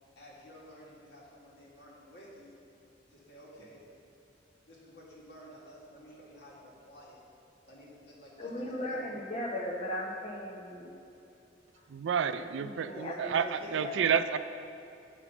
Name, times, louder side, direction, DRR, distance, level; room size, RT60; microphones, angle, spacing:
voice 1, 0.2-2.6 3.1-3.9 4.6-7.2 7.6-9.1 12.9-14.3, equal, 65° left, -5 dB, 2.1 m, -51 dB
voice 2, 8.4-11.0 12.6-14.0, left 1 dB, 35° left, -2 dB, 1.1 m, -37 dB
voice 3, 11.9-14.4, right 7 dB, 85° right, 13 dB, 0.4 m, -30 dB
7.9 x 6.0 x 5.9 m, 2.8 s
head